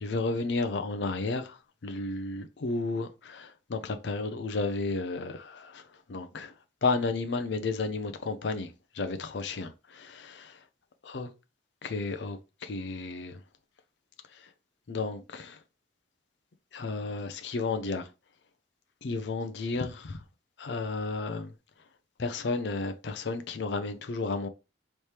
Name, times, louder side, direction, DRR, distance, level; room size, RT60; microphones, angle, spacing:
voice 1, 0.0-5.8 6.1-6.5 6.8-10.6 11.0-11.3 11.8-13.4 14.3-14.4 14.9-15.6 16.7-18.1 19.0-20.2 20.6-21.5 22.2-24.5, left 3 dB, 65° left, 0.5 m, -32 dB
4.3 x 3.2 x 3.3 m
head